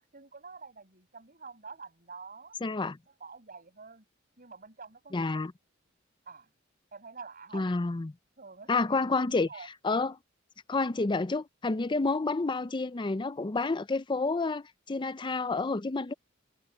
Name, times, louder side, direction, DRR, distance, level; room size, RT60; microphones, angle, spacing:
voice 1, 0.0-2.6 3.2-4.0 4.4-5.4 6.2-6.5 6.9-7.6 8.4-9.2 9.5-9.7, right 4 dB, 45° right, 6.8 m, -48 dB
voice 2, 2.6-3.0 5.1-5.5 7.5-8.1 8.7-10.2 10.7-16.1, left 3 dB, 25° left, 0.5 m, -29 dB
head